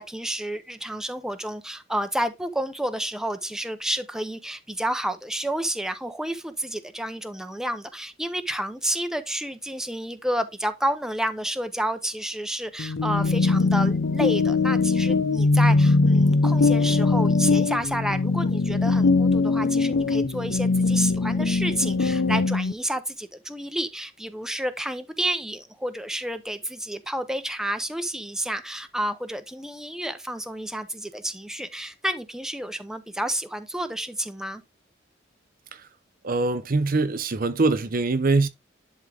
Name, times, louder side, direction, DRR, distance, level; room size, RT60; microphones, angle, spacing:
voice 1, 0.0-34.6, right 1 dB, 5° right, 0.7 m, -30 dB
sound 1, 12.8-22.7, left 3 dB, 90° left, 0.6 m, -21 dB
voice 2, 36.2-38.5, right 3 dB, 50° right, 0.7 m, -23 dB
11.0 x 3.7 x 3.5 m
head